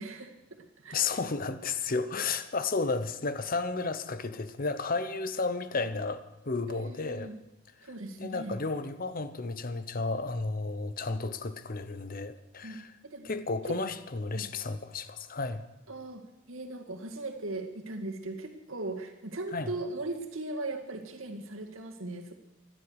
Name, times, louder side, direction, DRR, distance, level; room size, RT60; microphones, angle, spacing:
voice 1, 0.0-1.1 6.7-7.3 7.8-8.6 12.6-13.3 13.7-13.8 14.3-14.5 15.9-22.3, right 2 dB, 75° right, 3 dB, 2.1 m, -39 dB
voice 2, 0.9-7.3 8.2-12.9 13.2-15.6 19.5-19.7, left 3 dB, 45° left, 12 dB, 0.9 m, -32 dB
15.5 x 11.5 x 8.1 m, 0.95 s
head